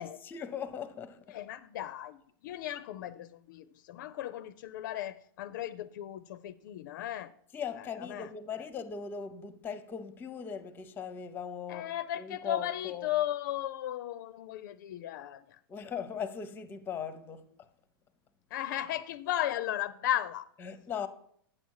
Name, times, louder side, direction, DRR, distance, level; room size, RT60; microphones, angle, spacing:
voice 1, 0.3-1.4 7.5-11.9 12.2-13.1 15.7-17.7 20.6-21.1, left 7 dB, 15° left, 0.6 m, -39 dB
voice 2, 1.3-7.3 7.7-8.3 8.6-8.7 11.7-15.6 18.5-20.5, left 12 dB, 55° left, 0.4 m, -36 dB
8.8 x 7.1 x 4.7 m
hypercardioid pair, 140°, 12 cm